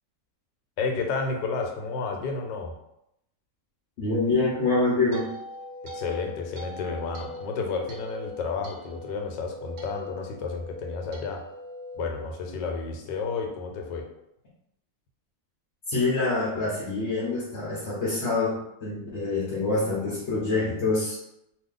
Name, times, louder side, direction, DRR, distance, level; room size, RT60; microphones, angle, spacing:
voice 1, 0.8-2.7 5.9-11.5 12.0-14.1, left 4 dB, 85° left, 3 dB, 1.3 m, -31 dB
voice 2, 4.0-5.3 15.9-21.2, left 3 dB, 55° left, -6 dB, 0.8 m, -26 dB
sound 1, 4.6-13.0, left 2 dB, 75° right, 1.3 m, -41 dB
2.9 x 2.4 x 3.6 m, 0.82 s
omnidirectional pair, 1.9 m